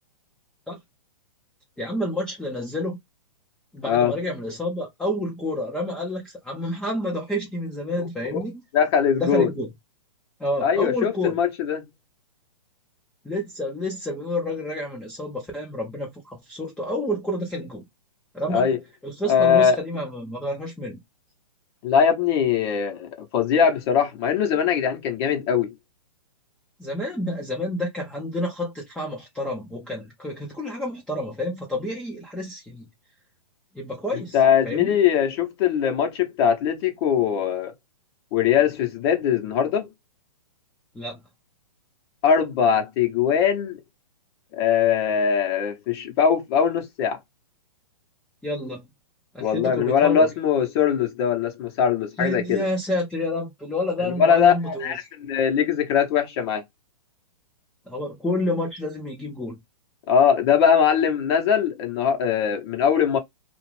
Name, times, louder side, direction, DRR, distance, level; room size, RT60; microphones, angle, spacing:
voice 1, 1.8-3.0 3.7-8.5 9.2-9.7 10.4-11.4 13.2-17.8 18.3-18.7 19.0-21.0 26.8-32.8 33.7-34.4 34.6-34.9 40.9-41.2 48.4-48.8 49.3-50.3 52.2-54.9 57.9-59.6, left 1 dB, 5° left, 0.6 m, -29 dB
voice 2, 3.8-4.1 8.3-8.4 8.7-9.5 10.6-11.8 18.5-18.8 19.3-19.8 21.8-25.7 34.3-37.7 38.3-39.9 42.2-43.8 44.5-47.2 49.4-52.6 54.0-56.6 60.1-63.2, left 7 dB, 40° left, 1.0 m, -21 dB
2.5 x 2.4 x 3.2 m
hypercardioid pair, 130°, 20 cm